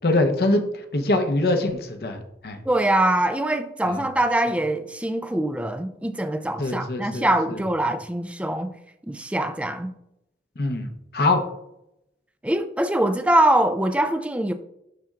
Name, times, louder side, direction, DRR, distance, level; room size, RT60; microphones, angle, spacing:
voice 1, 0.0-2.6 3.9-4.0 6.6-7.6 10.6-11.4, left 2 dB, 55° left, 0.8 m, -24 dB
voice 2, 2.7-8.7 9.1-9.9 12.4-14.5, right 1 dB, 5° right, 0.4 m, -23 dB
11.5 x 4.3 x 2.4 m
head